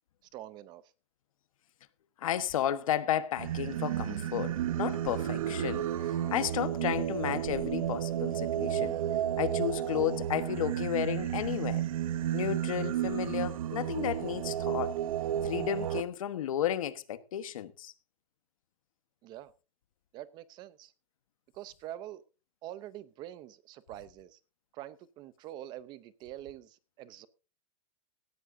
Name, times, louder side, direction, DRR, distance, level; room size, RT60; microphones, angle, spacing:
voice 1, 0.3-0.9 19.2-19.5 20.1-20.9 21.5-22.2 22.6-24.4 24.7-27.3, right 13 dB, 25° right, 0.6 m, -45 dB
voice 2, 2.2-8.9 9.4-11.9 12.3-15.0 15.4-17.9, left 11 dB, 85° left, 1.2 m, -33 dB
Singing, 3.4-16.0, right 11 dB, 85° right, 0.8 m, -32 dB
17.5 x 13.5 x 2.6 m
supercardioid pair, 165°, 17 cm